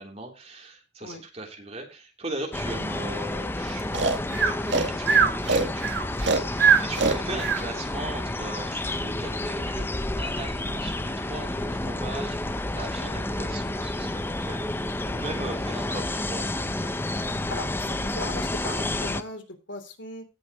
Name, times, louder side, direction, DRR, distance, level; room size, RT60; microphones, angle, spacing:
voice 1, 0.0-9.8 10.1-14.7 15.0-17.0, right 2 dB, 35° right, 2 dB, 3.3 m, -38 dB
sound 1, 2.5-19.2, left 1 dB, 10° left, 0.6 m, -30 dB
Breathing, 3.9-7.6, right 5 dB, 65° right, 1.9 m, -21 dB
voice 2, 17.5-20.3, left 2 dB, 80° left, 6 dB, 3.2 m, -38 dB
17.5 x 6.4 x 3.0 m, 0.29 s
head